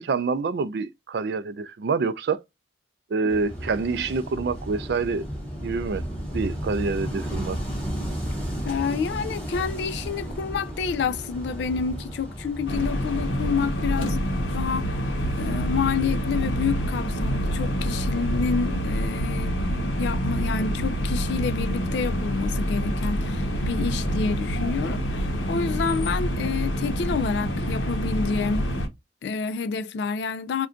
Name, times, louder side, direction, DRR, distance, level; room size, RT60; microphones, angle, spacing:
voice 1, 0.0-2.4 3.1-5.2 5.6-6.0 6.3-7.6, right 4 dB, 60° right, 0.3 m, -26 dB
Wind / Waves surf, 3.3-13.3, equal, 5° left, 1.0 m, -33 dB
voice 2, 8.6-14.2 14.5-14.9 15.4-19.5 20.0-28.7 29.2-30.7, left 5 dB, 65° left, 0.3 m, -28 dB
sound 1, 12.7-28.9, equal, 90° left, 0.8 m, -27 dB
2.5 x 2.2 x 3.6 m
head